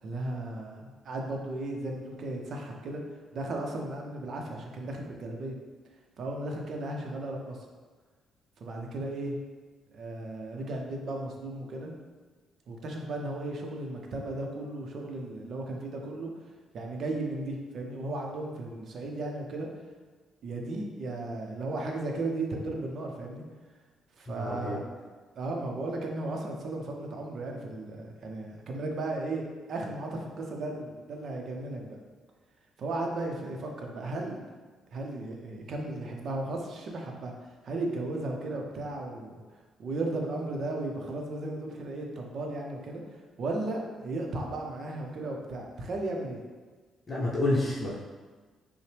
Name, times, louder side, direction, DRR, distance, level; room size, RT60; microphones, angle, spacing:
voice 1, 0.0-3.0 3.3-5.6 6.2-7.6 8.6-9.3 9.9-11.9 12.7-16.3 16.7-19.7 20.4-23.4 24.2-24.8 25.4-32.0 32.8-34.4 34.9-37.3 37.6-39.4 39.8-43.0 43.4-46.4, right 2 dB, 60° right, 1 dB, 0.6 m, -35 dB
voice 2, 24.3-24.8 47.1-48.0, left 1 dB, 30° left, -6 dB, 0.8 m, -29 dB
5.5 x 2.1 x 3.3 m, 1.4 s
cardioid pair, 90°, 0 cm